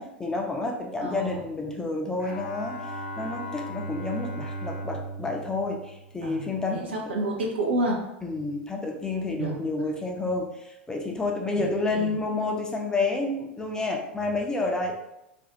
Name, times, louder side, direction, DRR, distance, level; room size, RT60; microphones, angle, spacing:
voice 1, 0.0-2.7 3.2-7.1 8.2-14.9, left 3 dB, 10° left, 1 dB, 0.4 m, -29 dB
voice 2, 1.0-1.4 6.2-8.0 9.4-9.6 11.6-12.1, right 1 dB, 70° right, -1 dB, 0.6 m, -30 dB
Bowed string instrument, 2.2-6.6, right 1 dB, 75° left, 0.8 m, -37 dB
2.5 x 2.3 x 2.8 m, 0.86 s
figure-of-eight pair, 85°, 6 cm